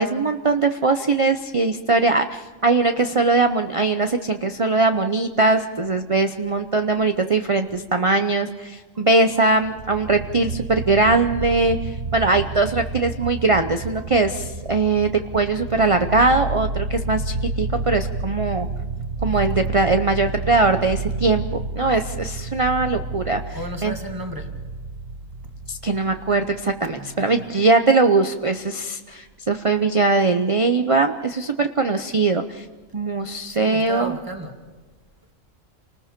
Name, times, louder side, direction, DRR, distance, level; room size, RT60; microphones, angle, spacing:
voice 1, 0.0-18.7 19.2-21.4 21.8-23.6 23.8-23.9 25.7-32.6 32.9-34.1, right 3 dB, 30° right, 7 dB, 0.7 m, -21 dB
voice 2, 8.8-10.2 13.0-13.5 14.0-14.1 18.5-18.6 19.0-19.1 23.5-24.5 26.8-27.6 33.4-34.6, right 1 dB, 15° right, 3 dB, 2.0 m, -36 dB
sound 1, 9.5-26.8, right 3 dB, 50° right, 1.1 m, -30 dB
29.0 x 19.5 x 5.2 m, 1.3 s
omnidirectional pair, 1.4 m